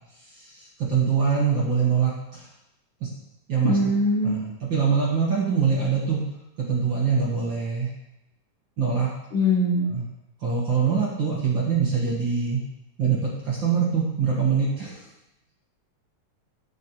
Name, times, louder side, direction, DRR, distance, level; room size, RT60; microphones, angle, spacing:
voice 1, 0.4-2.5 3.0-3.1 3.5-3.8 4.2-6.2 6.7-7.9 8.8-9.1 9.9-10.1 10.4-12.6 13.0-15.0, right 6 dB, 50° right, -5 dB, 1.8 m, -24 dB
voice 2, 3.6-4.4 9.3-9.9, left 1 dB, 75° left, -1 dB, 1.2 m, -22 dB
13.0 x 5.2 x 3.0 m, 0.89 s
omnidirectional pair, 3.3 m